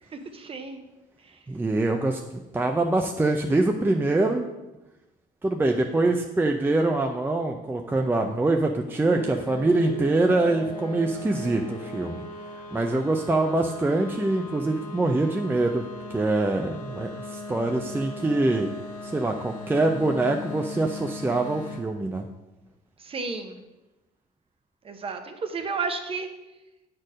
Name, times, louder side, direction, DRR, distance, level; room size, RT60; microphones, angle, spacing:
voice 1, 0.1-0.8 1.2-1.4 23.0-23.6 24.8-26.3, right 4 dB, 35° right, 7 dB, 1.0 m, -32 dB
voice 2, 1.5-4.5 5.4-12.2 12.7-15.8 16.1-18.7 19.0-22.3, right 2 dB, 10° right, 3 dB, 0.5 m, -24 dB
sound 1, 9.1-21.8, left 2 dB, 50° left, 1.2 m, -39 dB
8.0 x 4.4 x 6.3 m, 1.0 s
cardioid pair, 110°, 17 cm